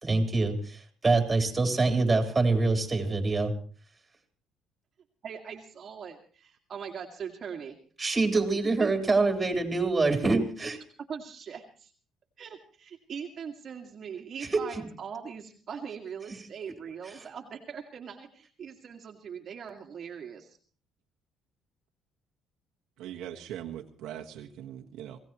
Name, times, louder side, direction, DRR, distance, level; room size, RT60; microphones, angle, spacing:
voice 1, 0.0-3.5 8.0-10.8 14.5-14.6, right 3 dB, 20° right, 3 dB, 3.8 m, -25 dB
voice 2, 5.2-7.8 8.8-8.9 11.1-11.9 12.4-20.6, right 7 dB, 45° right, 1 dB, 2.1 m, -41 dB
voice 3, 23.0-25.2, right 11 dB, 80° right, 1 dB, 1.5 m, -41 dB
26.5 x 17.0 x 3.1 m, 0.43 s
cardioid pair, 105°, 0 cm